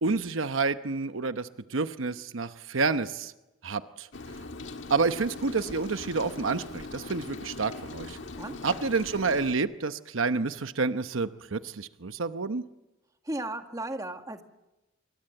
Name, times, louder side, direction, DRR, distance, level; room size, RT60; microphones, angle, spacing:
voice 1, 0.0-3.3 3.6-4.1 4.9-8.2 8.6-12.6, right 4 dB, 80° right, 10 dB, 0.9 m, -29 dB
Rain, 4.1-9.5, left 3 dB, 65° left, 1.8 m, -41 dB
voice 2, 8.4-8.8 13.2-14.4, right 1 dB, 15° right, 6 dB, 1.8 m, -35 dB
27.0 x 24.0 x 7.9 m, 0.98 s
head